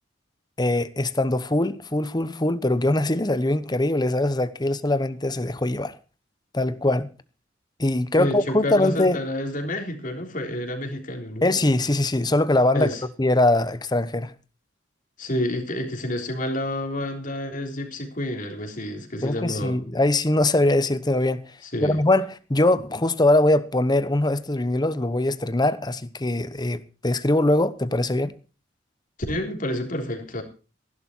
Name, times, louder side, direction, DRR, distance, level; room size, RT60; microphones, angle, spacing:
voice 1, 0.6-6.0 6.5-7.1 7.8-9.2 11.4-12.9 13.2-14.3 19.2-21.4 21.8-28.3, left 1 dB, 20° left, 1.0 m, -22 dB
voice 2, 8.2-11.5 12.7-13.0 15.2-19.8 21.6-22.0 29.3-30.4, left 1 dB, 45° left, 3.6 m, -29 dB
16.0 x 11.5 x 4.5 m
head